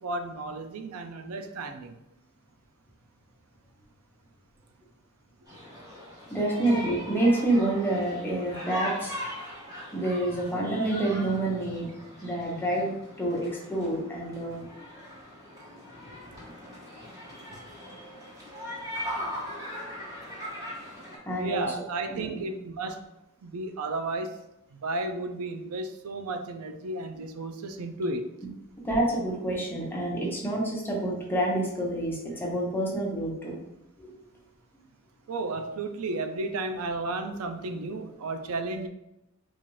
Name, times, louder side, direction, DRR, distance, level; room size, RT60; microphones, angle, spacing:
voice 1, 0.0-1.9 17.5-17.6 21.4-23.1 23.4-24.4 24.8-28.3 35.3-38.9, right 2 dB, 85° right, 7 dB, 0.4 m, -33 dB
sound 1, 5.5-21.2, equal, 15° right, 1.2 m, -40 dB
voice 2, 6.3-9.2 9.9-11.9 12.2-14.6 21.3-21.6 22.1-22.4 28.8-33.5 34.0-34.2, right 1 dB, 10° left, -3 dB, 0.9 m, -28 dB
4.0 x 2.5 x 3.1 m, 0.86 s
head